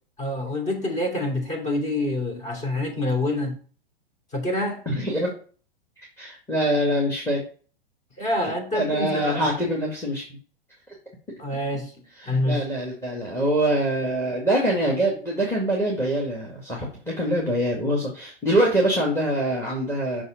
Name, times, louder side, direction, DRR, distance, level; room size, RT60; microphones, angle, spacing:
voice 1, 0.2-3.6 4.3-4.8 8.2-9.4 11.4-11.9 12.2-12.6, left 1 dB, 25° left, 2 dB, 2.9 m, -26 dB
voice 2, 4.9-5.3 6.0-7.4 8.4-10.2 12.2-20.2, right 1 dB, 10° left, -2 dB, 2.1 m, -24 dB
6.3 x 5.4 x 5.1 m, 0.41 s
hypercardioid pair, 115°, 30 cm